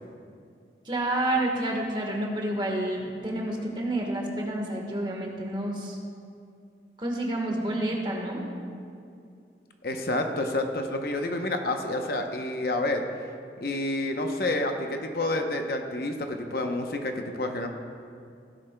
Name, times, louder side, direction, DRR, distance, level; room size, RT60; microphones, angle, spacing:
voice 1, 0.8-6.0 7.0-8.5, right 1 dB, 25° right, 0 dB, 1.3 m, -29 dB
voice 2, 9.8-13.0 13.6-17.7, left 2 dB, 55° left, 4 dB, 0.8 m, -29 dB
16.5 x 11.5 x 2.2 m, 2.4 s
head